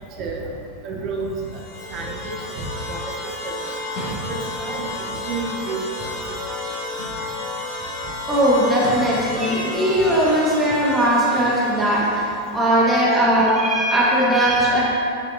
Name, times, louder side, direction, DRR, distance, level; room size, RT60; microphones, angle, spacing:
voice 1, 0.8-1.5 1.9-3.6 4.3-6.2 13.0-13.1, right 3 dB, 35° right, 0 dB, 1.1 m, -31 dB
sound 1, 1.3-12.6, left 2 dB, 30° left, 1.8 m, -32 dB
sound 2, 3.9-4.7 6.9-7.5 8.7-9.3, equal, 45° left, 1.6 m, -34 dB
voice 2, 8.3-12.2 12.5-14.8, right 1 dB, 15° right, -6 dB, 1.7 m, -19 dB
9.7 x 6.2 x 2.8 m, 2.5 s
figure-of-eight pair, 90°, 0 cm